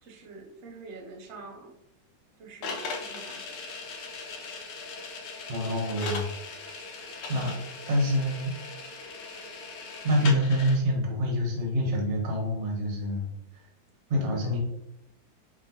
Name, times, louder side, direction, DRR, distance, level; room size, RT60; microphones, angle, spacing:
voice 1, 0.0-1.7 2.4-3.7, right 3 dB, 70° right, 2 dB, 0.6 m, -45 dB
sound 1, 2.6-10.8, left 3 dB, 75° left, 1.3 m, -38 dB
voice 2, 5.5-6.3 6.9-7.5 7.9-8.8 10.0-13.3 14.1-14.6, equal, 45° right, 0 dB, 1.1 m, -27 dB
5.0 x 2.7 x 2.7 m, 0.85 s
omnidirectional pair, 2.0 m